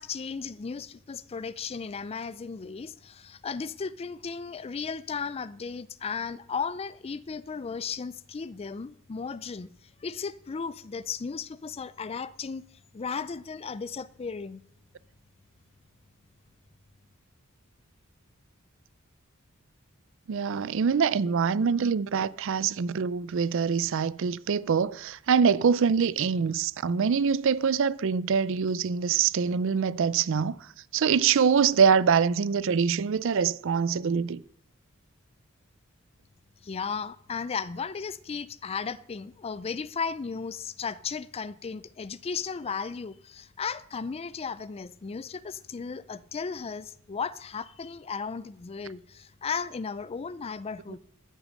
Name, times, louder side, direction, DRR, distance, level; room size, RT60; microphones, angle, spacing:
voice 1, 0.0-9.7 10.0-12.7 12.9-14.6 36.6-51.0, left 5 dB, 30° left, 0.4 m, -35 dB
voice 2, 20.3-30.6 30.9-34.4, right 6 dB, 65° right, 0.4 m, -24 dB
14.0 x 6.4 x 6.5 m
head